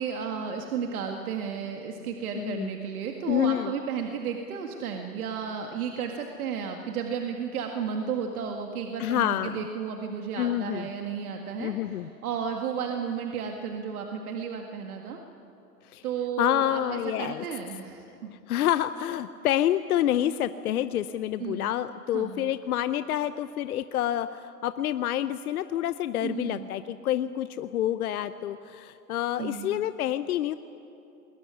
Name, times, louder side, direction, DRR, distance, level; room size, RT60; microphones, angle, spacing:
voice 1, 0.0-15.2 16.0-18.3 21.4-21.7 22.1-22.4 26.2-26.7 29.4-29.8, right 7 dB, 65° right, 3 dB, 2.0 m, -33 dB
voice 2, 2.3-2.7 3.3-3.7 9.0-9.7 10.4-10.9 11.6-12.1 15.9-16.0 16.4-17.4 18.5-30.5, left 12 dB, 65° left, 12 dB, 0.8 m, -28 dB
20.0 x 20.0 x 9.8 m, 2.7 s
hypercardioid pair, 125°, 47 cm